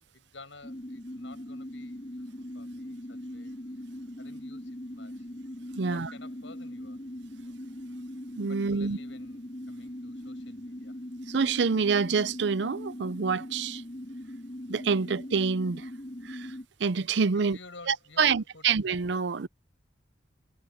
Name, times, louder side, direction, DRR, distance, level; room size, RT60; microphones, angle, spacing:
voice 1, 0.1-5.3 5.8-7.0 8.5-11.0 17.3-18.7, left 3 dB, 75° left, 7.1 m, -52 dB
sound 1, 0.6-16.6, left 1 dB, 30° left, 4.5 m, -41 dB
voice 2, 5.8-6.1 8.4-9.0 11.3-13.8 14.7-15.9 16.2-16.5 16.8-17.6 17.9-19.5, right 5 dB, 60° right, 0.5 m, -27 dB
head